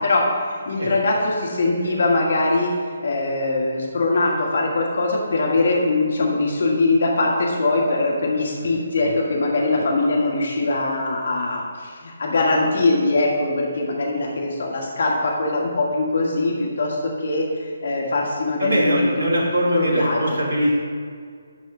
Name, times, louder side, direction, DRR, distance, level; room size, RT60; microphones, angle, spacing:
voice 1, 0.0-19.1 19.7-20.3, left 2 dB, 55° left, -2 dB, 2.0 m, -22 dB
voice 2, 18.6-20.8, right 1 dB, 60° right, -5 dB, 2.5 m, -22 dB
12.0 x 4.2 x 8.2 m, 2.1 s
figure-of-eight pair, 140°, 0 cm